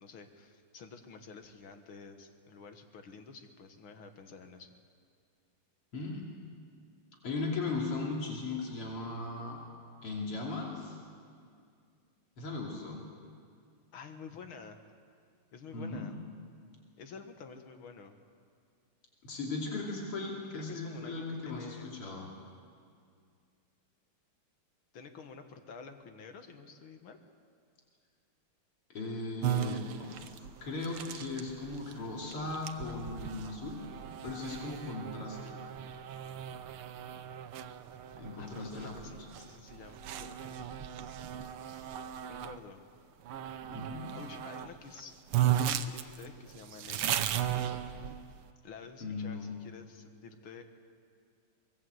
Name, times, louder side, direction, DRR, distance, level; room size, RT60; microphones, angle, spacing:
voice 1, 0.0-4.8 13.9-14.8 15.5-16.2 17.0-18.2 20.5-22.0 24.9-27.2 38.4-40.7 42.3-42.8 44.1-47.2 48.6-50.6, left 5 dB, 70° left, 6 dB, 2.3 m, -49 dB
voice 2, 5.9-6.2 7.2-9.6 10.0-11.0 12.4-13.0 15.7-16.1 19.2-22.3 28.9-33.8 34.2-35.6 38.1-38.9 43.6-44.1 49.0-49.5, left 3 dB, 90° left, -2 dB, 3.8 m, -38 dB
sound 1, 29.4-42.6 43.3-44.7 45.0-45.1 45.3-48.4, right 10 dB, 80° right, 1.7 m, -36 dB
24.0 x 21.0 x 7.9 m, 2.2 s
omnidirectional pair, 2.4 m